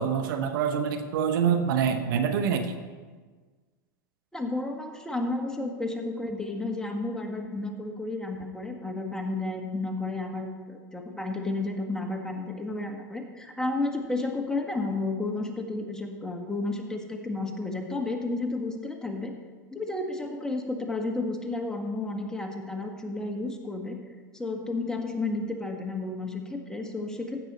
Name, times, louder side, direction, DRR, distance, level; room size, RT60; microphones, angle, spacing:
voice 1, 0.0-2.8, right 7 dB, 70° right, 9 dB, 1.0 m, -26 dB
voice 2, 4.3-19.3 19.7-24.0 24.3-27.5, left 2 dB, 5° left, 3 dB, 1.5 m, -32 dB
15.5 x 6.2 x 4.2 m, 1.4 s
hypercardioid pair, 105°, 11 cm